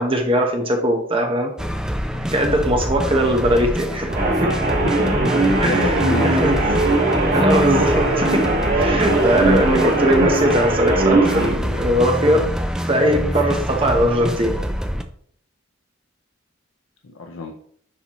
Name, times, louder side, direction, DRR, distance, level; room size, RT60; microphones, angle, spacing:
voice 1, 0.0-1.5 2.3-4.1 4.4-4.5 5.6-6.0 6.2-6.6 7.3-12.4 12.9-14.6, equal, 25° right, 3 dB, 1.0 m, -20 dB
sound 1, 1.6-15.0, equal, 5° right, 0.4 m, -26 dB
sound 2, 4.1-11.5, right 2 dB, 45° right, 1.8 m, -19 dB
voice 2, 4.8-6.3 17.0-17.5, left 3 dB, 75° left, 3 dB, 0.6 m, -30 dB
10.0 x 4.0 x 3.0 m, 0.62 s
head